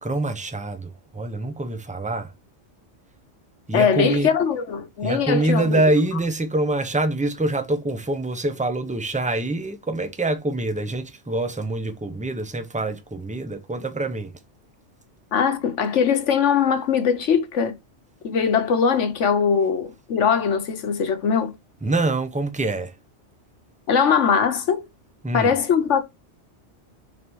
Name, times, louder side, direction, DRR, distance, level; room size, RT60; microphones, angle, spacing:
voice 1, 0.0-2.3 3.7-4.3 5.0-14.4 21.8-23.0 25.2-25.5, right 2 dB, 5° right, 0.7 m, -25 dB
voice 2, 3.7-5.8 15.3-17.7 18.2-21.5 23.9-24.8 25.3-26.0, left 6 dB, 80° left, 1.3 m, -21 dB
5.3 x 4.0 x 4.5 m
omnidirectional pair, 1.2 m